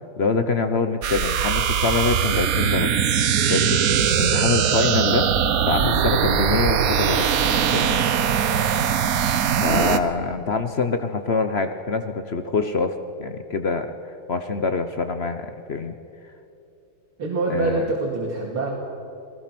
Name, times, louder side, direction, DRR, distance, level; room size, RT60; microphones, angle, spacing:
voice 1, 0.2-3.0 3.5-3.8 4.2-5.3 5.7-7.3 7.7-8.0 9.5-15.9 17.5-17.9, left 4 dB, 60° left, 8 dB, 0.6 m, -25 dB
sound 1, 1.0-10.0, right 8 dB, 55° right, 1.0 m, -21 dB
voice 2, 17.2-18.7, right 2 dB, 75° right, -3 dB, 3.2 m, -25 dB
28.0 x 19.0 x 6.0 m, 2.7 s
omnidirectional pair, 2.3 m